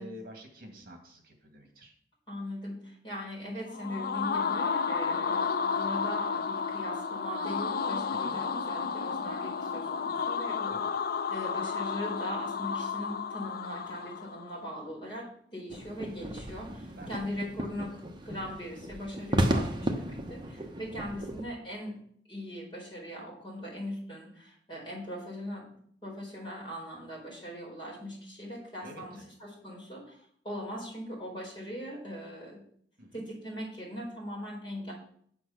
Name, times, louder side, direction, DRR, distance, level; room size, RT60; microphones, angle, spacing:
voice 1, 0.0-2.0 8.2-8.3 10.7-10.9 16.9-17.3 21.3-21.4 28.8-29.2 33.0-33.2, equal, 55° right, 3 dB, 2.2 m, -48 dB
voice 2, 2.3-10.7 11.3-22.0 22.3-25.7 26.0-32.6 33.1-34.9, equal, 30° left, -3 dB, 4.6 m, -40 dB
sound 1, 3.7-14.5, left 5 dB, 60° left, 0.5 m, -32 dB
sound 2, 15.7-21.4, right 1 dB, 25° right, 1.0 m, -34 dB
8.4 x 7.7 x 5.8 m, 0.63 s
head